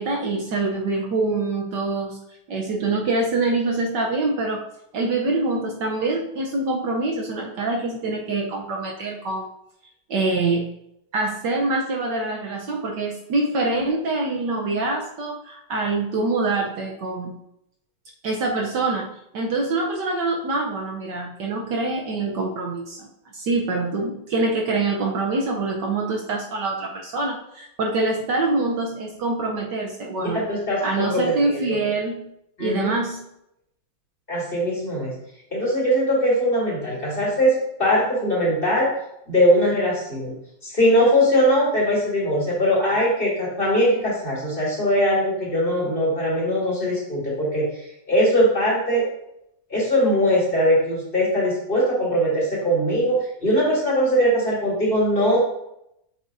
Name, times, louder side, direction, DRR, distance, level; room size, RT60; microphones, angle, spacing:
voice 1, 0.0-2.2 2.5-4.6 4.9-9.5 10.1-10.7 11.1-17.4 18.2-23.1 23.3-30.4 30.8-32.3 32.6-33.3, right 3 dB, 65° right, 0 dB, 1.4 m, -25 dB
voice 2, 30.2-31.7 32.6-32.9 34.3-35.1 35.5-37.5 37.8-38.9 39.3-40.3 40.6-49.0 49.7-55.4, equal, 25° left, -7 dB, 2.9 m, -21 dB
7.8 x 6.7 x 2.6 m, 0.81 s
omnidirectional pair, 2.1 m